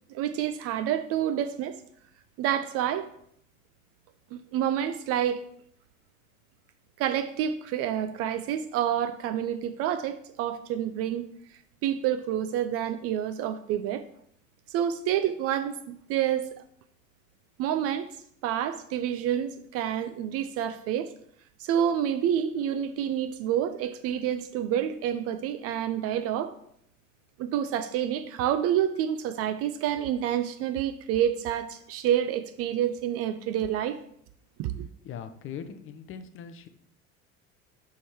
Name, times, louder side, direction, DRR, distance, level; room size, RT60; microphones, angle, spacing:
voice 1, 0.1-1.8 2.4-3.1 4.3-5.5 7.0-11.3 11.8-14.0 14.7-16.6 17.6-18.1 18.4-21.1 21.6-26.5 27.4-34.0 34.6-34.9, right 10 dB, 40° right, 0.4 m, -28 dB
voice 2, 35.0-36.7, left 7 dB, 30° left, 0.6 m, -40 dB
6.0 x 3.6 x 4.5 m
figure-of-eight pair, 70°, 41 cm